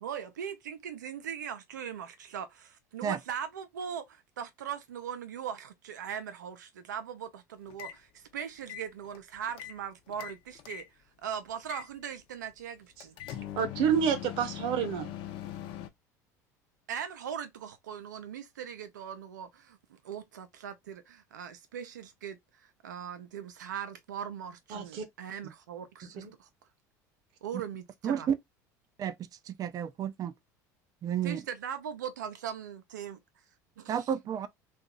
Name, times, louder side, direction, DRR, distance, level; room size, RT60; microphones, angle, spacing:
voice 1, 0.0-10.8 11.2-13.2 16.9-26.5 27.4-28.3 31.2-33.2 33.8-34.1, right 8 dB, 90° right, 0.7 m, -40 dB
sound 1, 7.7-8.0 8.6-9.8 10.1-10.9 11.7-11.9 13.0-15.9, left 12 dB, 60° left, 0.7 m, -41 dB
voice 2, 13.6-15.1 24.7-25.0 26.0-26.3, right 7 dB, 65° right, 1.0 m, -29 dB
voice 3, 28.0-28.4 29.0-29.1 29.5-30.3 31.0-31.4 33.9-34.5, right 8 dB, 40° right, 0.5 m, -31 dB
2.8 x 2.5 x 3.7 m
hypercardioid pair, 80°, 10 cm